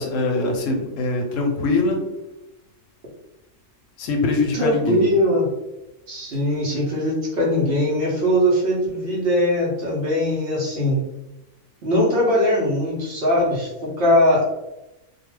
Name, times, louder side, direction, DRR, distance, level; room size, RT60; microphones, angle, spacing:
voice 1, 0.0-2.0 4.0-5.1, left 3 dB, 75° left, 2 dB, 0.9 m, -22 dB
voice 2, 4.5-5.5 6.1-11.0 11.8-14.4, left 1 dB, 55° right, -4 dB, 0.8 m, -20 dB
2.4 x 2.3 x 3.1 m, 0.97 s
omnidirectional pair, 1.4 m